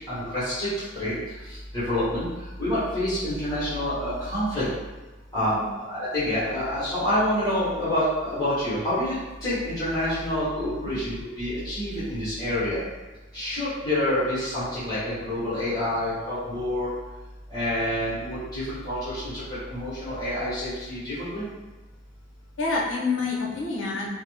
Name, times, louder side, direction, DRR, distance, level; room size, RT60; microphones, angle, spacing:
voice 1, 0.1-1.1 1.5-2.3 2.6-4.7 5.3-9.2 9.4-12.8 13.3-16.9 17.5-21.4, left 1 dB, 20° left, -13 dB, 1.1 m, -27 dB
voice 2, 5.4-5.7 22.6-24.1, left 3 dB, 70° left, -2 dB, 0.6 m, -27 dB
2.7 x 2.0 x 3.4 m, 1.2 s
head